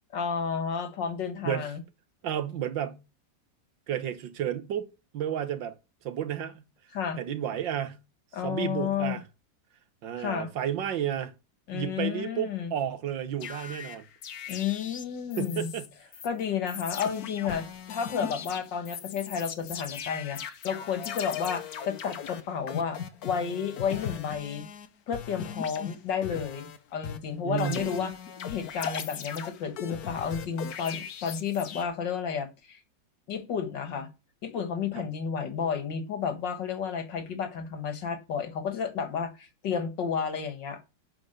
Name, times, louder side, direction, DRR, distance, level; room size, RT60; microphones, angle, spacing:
voice 1, 0.1-1.8 6.9-7.2 8.3-9.2 10.2-10.5 11.7-12.7 14.5-15.7 16.2-24.7 25.1-28.1 28.5-32.8 33.3-34.1 34.4-40.8, left 7 dB, 75° left, 2.1 m, -31 dB
voice 2, 2.2-3.0 3.9-4.9 5.1-5.8 6.0-6.6 7.2-8.0 8.4-9.2 10.0-11.3 11.7-14.0 15.4-15.9 27.4-28.1, right 10 dB, 85° right, 1.8 m, -32 dB
sound 1, 13.4-16.3 16.7-24.9 25.1-26.8 27.0-31.8, left 8 dB, 60° left, 1.3 m, -38 dB
10.5 x 4.8 x 6.6 m
omnidirectional pair, 1.9 m